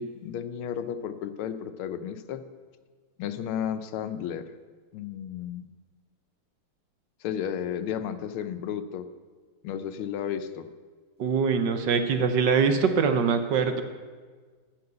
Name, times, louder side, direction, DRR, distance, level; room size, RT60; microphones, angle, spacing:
voice 1, 0.0-2.4 3.2-4.5 4.9-5.7 7.2-9.1 9.6-10.7, left 8 dB, 90° left, 10 dB, 1.6 m, -33 dB
voice 2, 11.2-13.8, right 5 dB, 65° right, 7 dB, 1.3 m, -23 dB
13.0 x 5.9 x 7.8 m, 1.5 s
omnidirectional pair, 2.3 m